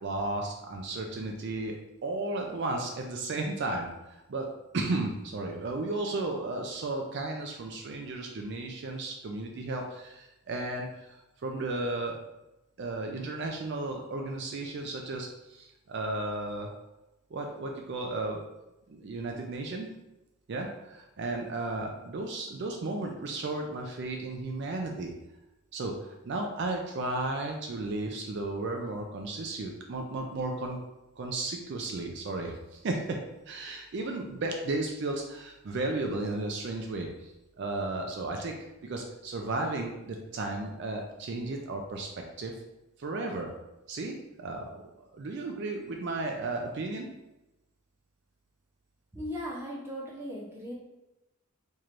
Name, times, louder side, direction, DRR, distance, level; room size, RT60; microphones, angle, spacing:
voice 1, 0.0-1.8 2.0-3.9 4.3-12.2 12.8-16.7 17.3-18.4 18.9-19.9 20.5-25.1 25.7-30.8 31.2-33.2 33.5-37.3 37.6-38.6 38.8-42.5 43.0-43.5 43.9-44.8 45.1-47.1, right 2 dB, 55° right, 2 dB, 0.4 m, -34 dB
voice 2, 49.1-50.7, equal, 10° right, -4 dB, 0.7 m, -37 dB
4.4 x 3.1 x 2.5 m, 0.97 s
head